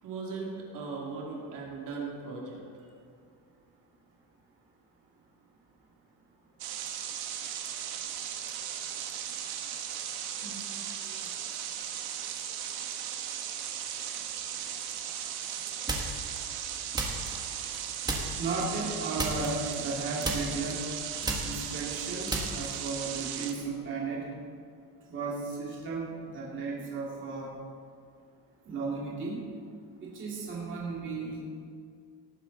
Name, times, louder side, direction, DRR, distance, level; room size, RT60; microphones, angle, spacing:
voice 1, 0.0-2.6, right 4 dB, 50° right, -2 dB, 2.6 m, -38 dB
sound 1, 6.6-23.5, right 9 dB, 70° right, 1.4 m, -37 dB
sound 2, 15.9-16.4 16.9-17.8 18.1-18.6 19.2-20.0 20.2-23.0, right 2 dB, 10° right, 1.3 m, -33 dB
voice 2, 18.4-20.9 21.4-24.3 25.1-27.5 28.7-29.4 30.0-31.5, right 4 dB, 30° right, -5 dB, 2.3 m, -35 dB
18.5 x 9.3 x 4.0 m, 2.2 s
cardioid pair, 165°, 39 cm